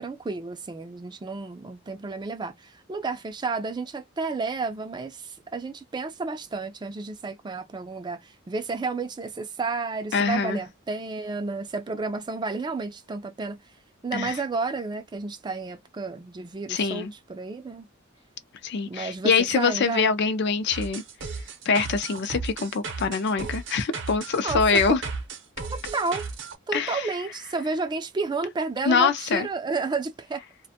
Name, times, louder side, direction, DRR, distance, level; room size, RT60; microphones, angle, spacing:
voice 1, 0.0-13.6 14.0-17.9 18.9-20.1 24.4-25.0 25.7-26.3 26.7-30.4, right 3 dB, 20° right, 0.4 m, -31 dB
voice 2, 10.1-10.6 14.1-14.4 16.7-17.1 18.6-21.0 21.7-25.0 26.7-27.1 28.9-29.5, left 5 dB, 60° left, 0.5 m, -24 dB
sound 1, 20.7-26.6, right 4 dB, 65° right, 0.7 m, -35 dB
2.5 x 2.2 x 2.7 m
head